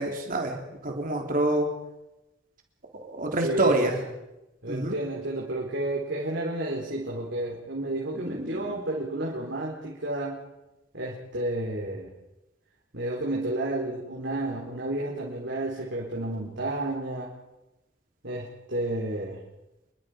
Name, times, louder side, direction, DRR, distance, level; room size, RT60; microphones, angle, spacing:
voice 1, 0.0-1.7 2.9-4.0 4.7-4.9 8.2-8.7, right 1 dB, 45° right, 2 dB, 3.6 m, -27 dB
voice 2, 3.4-4.0 4.6-10.4 10.9-12.1 12.9-17.3 18.2-19.4, right 1 dB, 65° right, -3 dB, 4.3 m, -31 dB
28.0 x 23.5 x 5.2 m, 0.95 s
head